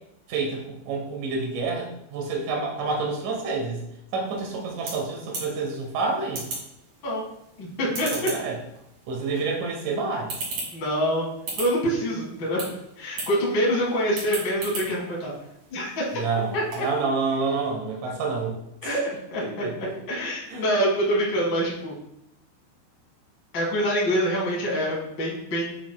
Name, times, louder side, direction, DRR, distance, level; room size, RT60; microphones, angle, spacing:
voice 1, 0.3-3.8 4.1-6.5 8.1-8.6 9.1-10.3 16.1-18.6 19.4-19.9 20.5-20.7, right 4 dB, 80° right, -1 dB, 1.8 m, -28 dB
sound 1, 4.2-17.0, right 2 dB, 45° right, 2.8 m, -39 dB
voice 2, 7.6-8.1 10.7-11.3 11.6-12.7 13.0-15.3 15.7-16.2 16.5-16.6 18.8-19.4 20.1-21.9 23.5-25.8, equal, 50° left, -5 dB, 1.3 m, -25 dB
7.3 x 5.9 x 2.2 m, 0.81 s
omnidirectional pair, 5.2 m